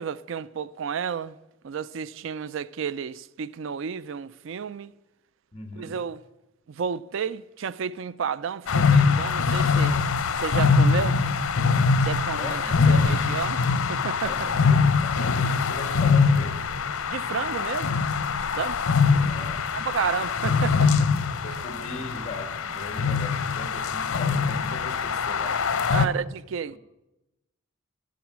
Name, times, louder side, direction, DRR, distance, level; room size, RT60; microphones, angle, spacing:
voice 1, 0.0-1.4 1.6-4.9 5.8-6.2 6.7-9.9 10.4-11.2 12.0-12.6 12.9-13.6 13.9-14.5 17.1-18.0 18.6-18.8 19.4-21.1 25.9-26.8, right 6 dB, 70° right, 0.4 m, -31 dB
voice 2, 5.5-6.0 12.4-13.2 14.2-16.7 19.2-19.7 20.0-20.3 21.4-26.2, left 2 dB, 35° left, 1.9 m, -39 dB
sound 1, 8.7-26.1, left 5 dB, 85° left, 0.7 m, -23 dB
12.0 x 10.0 x 6.1 m
head